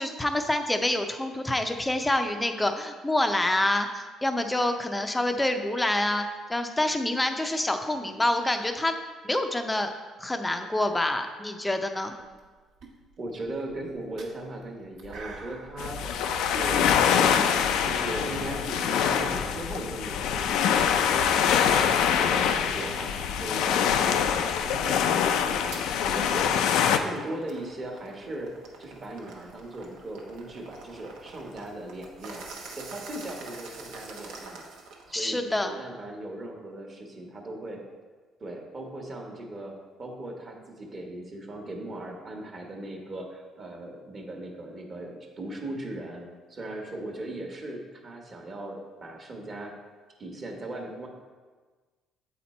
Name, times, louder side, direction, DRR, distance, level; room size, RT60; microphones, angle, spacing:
voice 1, 0.0-8.9 9.2-9.9 10.2-12.1 35.1-35.7, left 1 dB, 10° left, 6 dB, 0.5 m, -27 dB
sound 1, 12.2-12.5 12.8-17.8, right 3 dB, 65° right, 1.1 m, -47 dB
voice 2, 13.2-17.5 17.8-21.3 21.7-28.5 28.8-32.4 32.7-34.7 35.1-37.8 38.4-49.7 50.2-51.1, right 1 dB, 35° right, 1 dB, 1.1 m, -38 dB
sound 2, 15.8-27.0, left 8 dB, 85° left, 0.4 m, -24 dB
sound 3, 25.7-25.9 26.4-35.2, right 3 dB, 90° right, 1.0 m, -46 dB
7.8 x 4.3 x 4.2 m, 1.4 s
cardioid pair, 120°, 0 cm